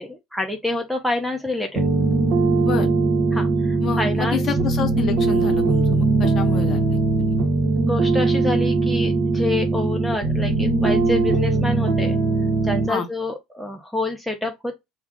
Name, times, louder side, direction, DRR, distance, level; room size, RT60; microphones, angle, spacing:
voice 1, 0.0-1.9 3.3-4.5 7.8-12.2 12.6-14.7, left 2 dB, ahead, 0.6 m, -27 dB
sound 1, 1.8-12.9, right 3 dB, 50° right, 1.0 m, -20 dB
voice 2, 2.6-2.9 3.8-7.3 12.9-13.1, left 6 dB, 40° left, 0.7 m, -29 dB
3.5 x 2.1 x 3.5 m
figure-of-eight pair, 65°, 0 cm